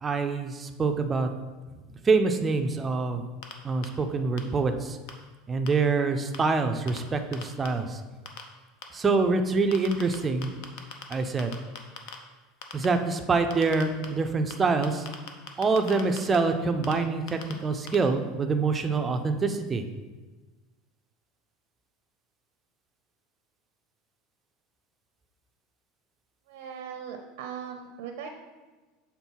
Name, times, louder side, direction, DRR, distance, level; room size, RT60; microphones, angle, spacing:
voice 1, 0.0-1.3 2.1-3.2 3.6-5.0 5.5-8.0 8.9-10.5 11.1-11.5 12.7-15.1 15.6-19.8, right 4 dB, 15° right, 6 dB, 0.4 m, -25 dB
sound 1, 3.4-3.5 3.8-3.9 4.4-4.5 5.1-5.2 5.7-5.8 6.3-6.4 6.9-7.0 7.3-7.7 8.3-8.4 8.8-8.9 9.7-10.2 10.4-11.1 11.4-12.2 12.6-12.9 13.5-14.1 14.5-14.6 14.8-16.4 16.8-16.9 17.3-17.5 17.9-18.0, left 8 dB, 65° left, 0.7 m, -38 dB
voice 2, 26.5-28.3, right 7 dB, 90° right, 4 dB, 0.6 m, -39 dB
7.0 x 3.7 x 4.5 m, 1.3 s
supercardioid pair, 155°, 0 cm